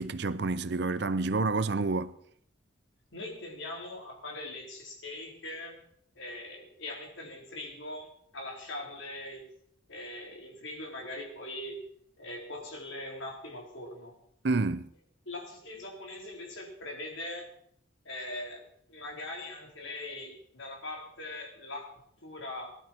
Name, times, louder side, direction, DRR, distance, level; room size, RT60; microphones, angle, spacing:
voice 1, 0.0-2.1 14.4-14.9, right 3 dB, 55° right, 0.6 m, -29 dB
voice 2, 3.1-5.8 6.1-9.5 9.9-11.8 12.2-14.1 15.3-17.5 18.0-22.8, left 1 dB, 70° left, 4.2 m, -41 dB
19.5 x 12.0 x 4.6 m
head